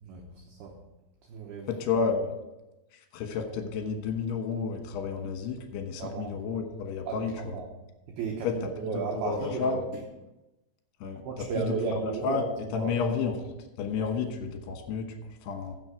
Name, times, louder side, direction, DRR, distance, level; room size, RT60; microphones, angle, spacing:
voice 1, 0.0-0.7 1.3-1.7 6.0-6.3 7.1-7.2 7.5-7.7 8.2-9.8 11.3-12.4 12.8-12.9, right 5 dB, 90° right, 1 dB, 2.1 m, -34 dB
voice 2, 1.7-2.3 2.9-7.6 8.4-9.8 11.0-15.1 15.4-15.8, left 5 dB, 70° left, 4 dB, 2.9 m, -31 dB
15.0 x 6.3 x 4.9 m, 0.99 s
omnidirectional pair, 5.9 m